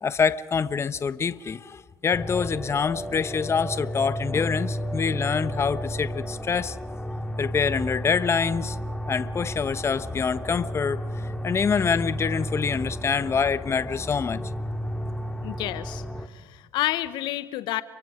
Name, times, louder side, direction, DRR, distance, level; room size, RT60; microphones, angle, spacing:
voice 1, 0.0-6.8 7.4-8.8 9.1-11.0 11.4-14.4, left 6 dB, 30° left, 15 dB, 1.0 m, -25 dB
sound 1, 2.1-16.3, equal, 10° left, 2.7 m, -32 dB
voice 2, 15.4-16.0 16.3-17.8, left 15 dB, 65° left, 15 dB, 1.1 m, -29 dB
30.0 x 24.0 x 5.0 m, 1.3 s
hypercardioid pair, 65°, 8 cm